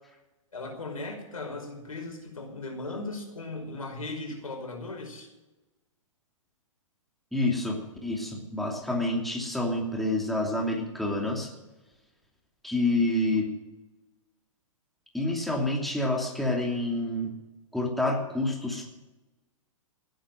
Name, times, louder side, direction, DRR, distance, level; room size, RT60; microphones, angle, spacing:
voice 1, 0.5-5.3, left 2 dB, 85° left, 4 dB, 5.3 m, -37 dB
voice 2, 7.3-11.5 12.6-13.5 15.1-17.3 17.7-18.9, left 2 dB, ahead, 0 dB, 2.7 m, -28 dB
17.5 x 10.0 x 7.7 m, 1.1 s
hypercardioid pair, 125°, 18 cm